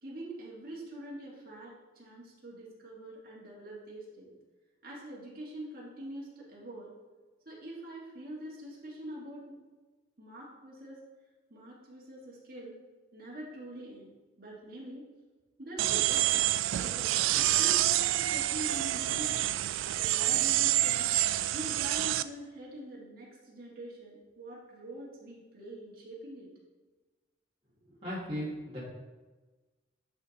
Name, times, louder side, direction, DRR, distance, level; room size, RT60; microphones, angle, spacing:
voice 1, 0.0-4.3 4.8-7.0 7.5-9.6 10.2-11.0 11.5-12.8 13.1-14.1 14.4-15.0 15.6-16.5 16.8-19.4 20.0-21.1 21.5-26.5, right 1 dB, 50° right, -5 dB, 2.1 m, -44 dB
sound 1, 15.8-22.2, right 14 dB, 90° right, 0.3 m, -27 dB
voice 2, 27.9-28.8, equal, 30° right, -9 dB, 2.3 m, -37 dB
10.0 x 3.7 x 4.1 m, 1.3 s
head